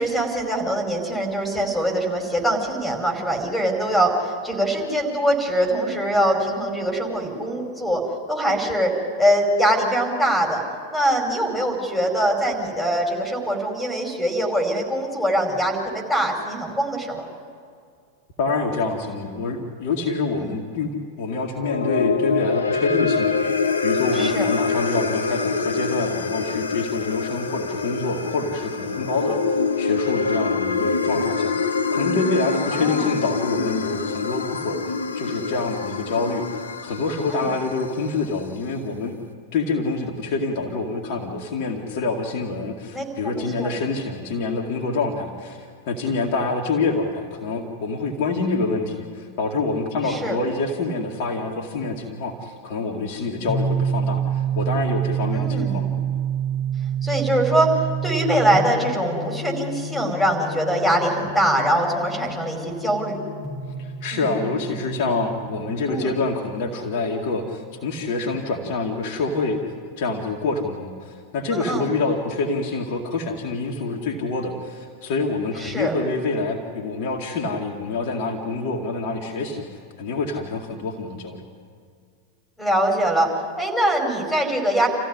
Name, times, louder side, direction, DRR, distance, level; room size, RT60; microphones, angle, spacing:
voice 1, 0.0-8.0 8.3-8.9 9.2-10.6 10.9-17.3 20.4-20.5 24.1-24.5 32.7-33.1 37.3-37.5 42.9-43.7 50.0-50.4 55.3-55.9 57.0-63.2 64.1-64.3 65.9-66.1 71.5-71.9 75.6-75.9 82.6-83.3 83.6-84.9, right 1 dB, ahead, 3 dB, 5.0 m, -23 dB
voice 2, 18.4-39.2 39.5-55.9 63.8-69.6 70.0-79.7 80.0-81.4, left 3 dB, 50° left, 0 dB, 2.1 m, -26 dB
sound 1, 21.5-38.0, left 4 dB, 70° left, 1.0 m, -25 dB
sound 2, 53.5-67.1, right 6 dB, 35° right, 6.4 m, -28 dB
27.5 x 15.5 x 9.7 m, 2.3 s
figure-of-eight pair, 90°, 0 cm